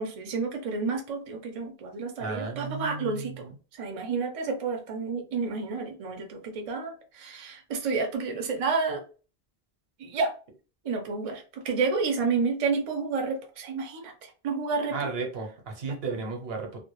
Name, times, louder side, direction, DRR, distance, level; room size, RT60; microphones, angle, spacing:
voice 1, 0.0-3.5 3.8-9.0 10.0-10.3 10.8-14.1 14.4-15.1, right 4 dB, 45° right, 3 dB, 0.5 m, -30 dB
voice 2, 2.2-3.5 14.9-16.8, right 4 dB, 75° right, 1 dB, 0.9 m, -34 dB
2.1 x 2.1 x 2.9 m, 0.36 s
omnidirectional pair, 1.0 m